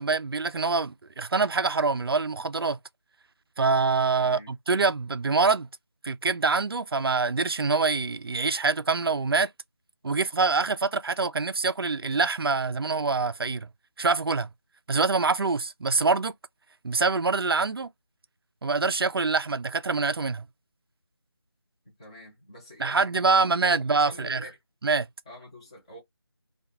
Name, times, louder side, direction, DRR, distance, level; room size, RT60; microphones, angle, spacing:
voice 1, 0.0-2.8 3.6-5.7 6.0-9.5 10.0-13.7 14.0-14.5 14.9-16.3 16.8-17.9 18.6-20.4 22.8-24.4 24.8-25.1, right 4 dB, 60° right, 0.4 m, -25 dB
voice 2, 4.1-4.5 21.8-24.6 25.3-26.0, left 1 dB, 15° left, 0.8 m, -47 dB
2.3 x 2.3 x 2.8 m
figure-of-eight pair, 165°, 14 cm